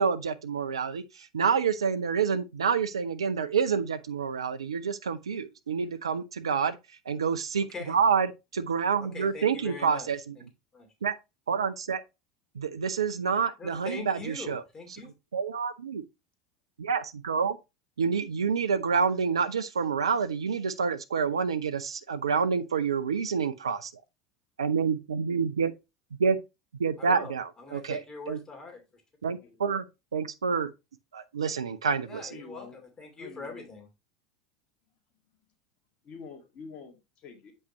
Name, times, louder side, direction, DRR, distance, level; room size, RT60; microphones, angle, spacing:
voice 1, 0.0-6.8 7.1-10.3 11.0-11.1 11.5-12.0 12.6-14.6 15.3-16.0 16.8-17.6 18.0-23.9 24.6-25.7 26.2-26.4 26.8-28.4 29.2-29.8 30.1-30.7 31.1-32.4, right 6 dB, 80° right, 0.5 m, -28 dB
voice 2, 9.0-10.1 10.4-10.5 10.7-10.9 13.6-15.1 27.0-28.8 32.1-33.9, left 3 dB, 20° left, 2.6 m, -42 dB
voice 3, 32.3-32.8 33.1-33.7 36.0-37.5, left 5 dB, 40° left, 2.0 m, -47 dB
8.1 x 5.4 x 3.0 m
figure-of-eight pair, 80°, 3 cm